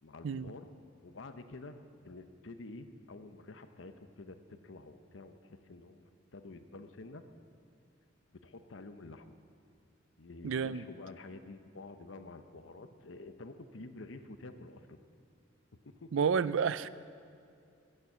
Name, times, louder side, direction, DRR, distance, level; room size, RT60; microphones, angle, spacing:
voice 1, 0.0-0.7 1.0-7.2 8.3-9.4 10.2-15.0 15.8-16.1, left 2 dB, 80° left, 9 dB, 0.8 m, -49 dB
voice 2, 10.4-10.8 16.1-16.9, right 6 dB, 85° right, 17 dB, 0.4 m, -30 dB
14.5 x 8.9 x 7.3 m, 2.4 s
head